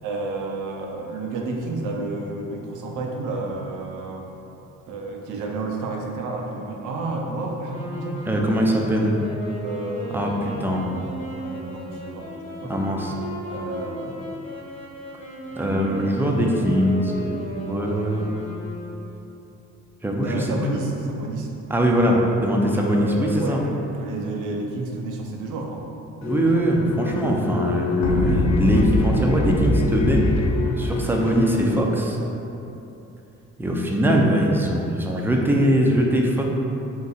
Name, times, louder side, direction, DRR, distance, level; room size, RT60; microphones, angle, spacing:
voice 1, 0.0-4.3 4.9-8.2 9.4-10.8 11.4-12.8 13.5-14.4 15.5-16.1 20.1-21.5 22.7-25.8, right 2 dB, 85° right, 1 dB, 0.6 m, -31 dB
Wind instrument woodwind instrument, 7.6-19.3, equal, 25° left, 1.2 m, -36 dB
voice 2, 8.3-9.1 10.1-10.8 12.7-13.1 15.6-18.2 20.0-20.5 21.7-23.6 26.2-30.2 30.8-32.2 33.6-36.5, equal, 5° right, -1 dB, 0.5 m, -21 dB
sound 1, 26.2-31.6, left 2 dB, 65° left, 0.6 m, -23 dB
3.8 x 2.6 x 4.1 m, 2.8 s
cardioid pair, 90°, 30 cm